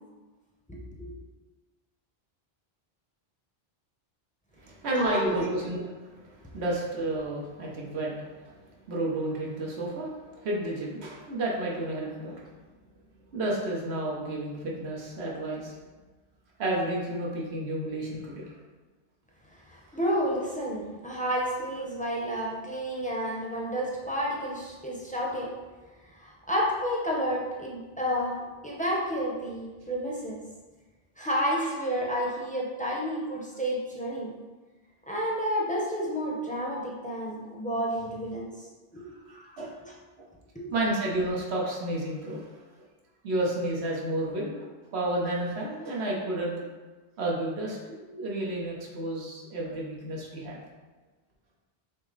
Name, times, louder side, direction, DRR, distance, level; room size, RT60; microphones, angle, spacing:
voice 1, 0.7-1.1 5.0-5.5 19.7-25.5 26.1-28.4 28.6-30.4 31.2-34.3 35.1-38.7 38.9-39.9 40.5-40.6, equal, 10° left, -4 dB, 0.6 m, -30 dB
voice 2, 4.6-8.5 8.9-12.5 13.3-15.7 16.6-18.5 39.3-39.7 40.2-40.3 40.7-42.5 43.2-46.5 47.2-50.6, right 1 dB, 85° right, -3 dB, 1.2 m, -31 dB
6.1 x 2.0 x 3.9 m, 1.3 s
omnidirectional pair, 1.1 m